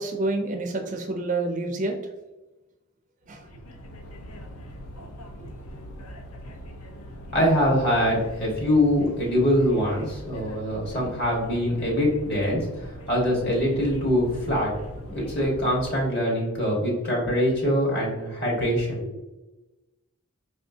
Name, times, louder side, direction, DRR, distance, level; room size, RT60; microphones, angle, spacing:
voice 1, 0.0-1.9 3.3-3.5, right 2 dB, 35° right, 4 dB, 0.4 m, -28 dB
sound 1, 3.2-15.9, equal, 85° left, 0.6 m, -41 dB
voice 2, 7.3-14.7 15.1-19.1, equal, 50° left, -3 dB, 1.4 m, -24 dB
4.2 x 3.1 x 2.7 m, 1.1 s
head